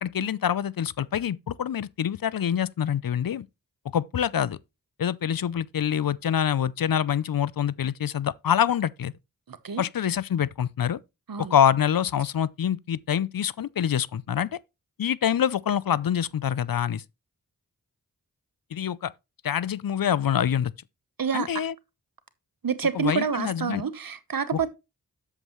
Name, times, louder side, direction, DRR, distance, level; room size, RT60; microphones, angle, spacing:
voice 1, 0.0-3.5 3.9-4.6 5.0-9.1 9.8-11.0 11.4-14.6 15.0-17.0 18.7-19.1 19.4-20.7 21.3-21.7 22.9-23.8 24.5-24.6, left 9 dB, 70° left, 0.5 m, -25 dB
voice 2, 9.5-9.8 11.3-11.5 21.2-21.5 22.6-24.7, right 6 dB, 70° right, 1.0 m, -28 dB
8.2 x 7.4 x 3.0 m
cardioid pair, 45°, 36 cm